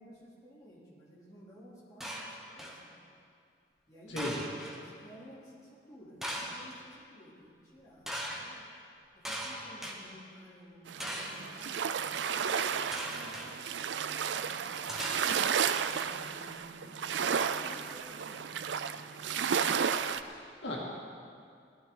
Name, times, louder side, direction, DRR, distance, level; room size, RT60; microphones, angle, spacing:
voice 1, 0.0-3.0 3.9-8.6 9.3-15.3 15.8-19.1, equal, 20° left, -8 dB, 3.1 m, -54 dB
sound 1, 2.0-2.8 4.2-4.8 6.2-6.7 8.1-8.4 9.2-10.0 11.0-11.5 12.9-13.5 14.9-15.6, equal, ahead, 1.2 m, -39 dB
sound 2, 10.9-20.2, right 7 dB, 75° right, 0.4 m, -33 dB
voice 2, 20.2-20.8, left 1 dB, 80° left, -3 dB, 2.2 m, -37 dB
17.0 x 12.0 x 3.9 m, 2.3 s
head